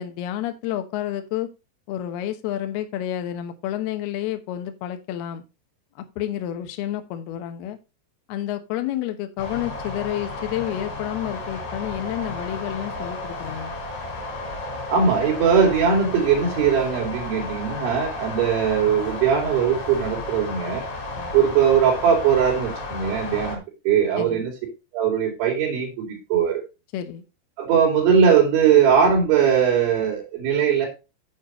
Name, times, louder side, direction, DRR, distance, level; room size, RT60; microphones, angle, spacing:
voice 1, 0.0-1.5 1.9-5.4 6.0-7.8 8.3-13.7 21.2-21.3 24.2-24.4 26.9-27.2, left 12 dB, 75° left, 7 dB, 2.4 m, -30 dB
sound 1, 9.4-23.6, left 2 dB, 45° left, 3.8 m, -33 dB
voice 2, 14.9-20.8 21.3-23.6 23.8-24.5 24.9-26.6 27.6-30.9, right 7 dB, 65° right, 0 dB, 4.9 m, -20 dB
9.4 x 8.6 x 3.0 m, 0.27 s
omnidirectional pair, 6.0 m